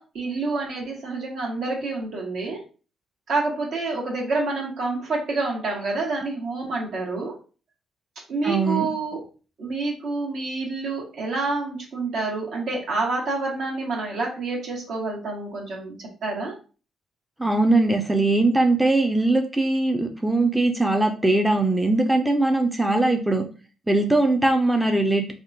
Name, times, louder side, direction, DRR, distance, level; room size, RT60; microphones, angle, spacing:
voice 1, 0.0-2.6 3.3-7.4 8.3-9.2 9.6-16.5, right 3 dB, 70° right, -1 dB, 1.2 m, -28 dB
voice 2, 8.4-8.9 17.4-23.4 23.9-25.3, right 2 dB, 5° right, 3 dB, 0.4 m, -21 dB
3.5 x 2.3 x 2.6 m, 0.36 s
cardioid pair, 90°, 0 cm